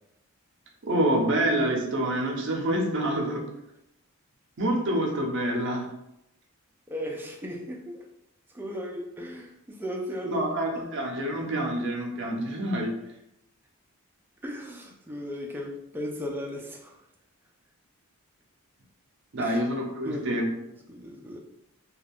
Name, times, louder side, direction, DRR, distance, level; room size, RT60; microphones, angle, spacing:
voice 1, 0.8-3.4 4.6-5.9 10.2-12.9 19.3-20.5, right 1 dB, 55° right, 1 dB, 0.6 m, -27 dB
voice 2, 6.9-8.1 8.5-10.5 10.8-10.9 14.4-17.0 19.4-19.6 20.0-20.3 20.6-21.4, equal, 10° right, 0 dB, 0.3 m, -36 dB
2.3 x 2.3 x 3.4 m, 0.83 s
head